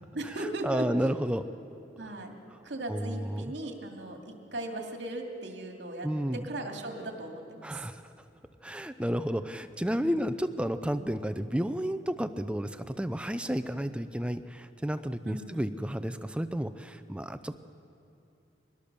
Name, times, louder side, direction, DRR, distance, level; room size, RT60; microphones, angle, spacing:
voice 1, 0.1-0.8 2.0-2.3 2.6-6.1 6.4-7.9 10.0-10.2 15.3-15.7, right 1 dB, 70° right, 2 dB, 2.4 m, -38 dB
voice 2, 0.6-1.5 2.9-3.5 6.0-6.5 7.6-8.0 8.6-17.6, equal, 5° right, 11 dB, 0.5 m, -31 dB
22.5 x 20.0 x 6.8 m, 2.8 s
head